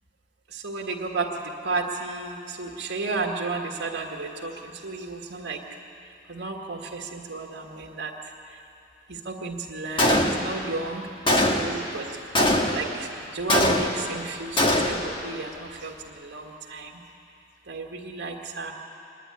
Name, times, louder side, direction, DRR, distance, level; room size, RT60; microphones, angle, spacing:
voice 1, 0.6-1.3 1.6-4.5 4.8-5.6 6.3-8.1 9.1-11.0 11.5-12.1 12.7-13.1 13.3-14.9 15.2-15.5 15.8-15.9 16.2-16.4 16.7-16.9 17.7-18.7, right 3 dB, 85° right, -2 dB, 1.7 m, -32 dB
Gunshot gunfire, 10.0-10.7 11.3-11.8 12.3-13.0 13.5-14.2 14.6-15.1, left 1 dB, 25° left, 1.4 m, -22 dB
25.0 x 11.0 x 9.8 m, 2.6 s
head